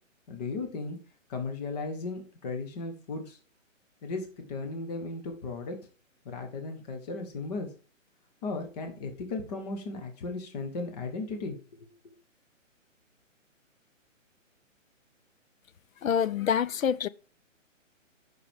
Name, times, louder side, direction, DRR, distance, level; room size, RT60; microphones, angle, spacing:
voice 1, 0.3-1.0 1.3-3.4 4.0-5.8 6.2-7.7 8.4-11.9, left 3 dB, 30° left, 1.4 m, -36 dB
voice 2, 16.0-17.1, left 8 dB, 90° left, 0.6 m, -26 dB
8.6 x 6.0 x 3.6 m
hypercardioid pair, 155°, 39 cm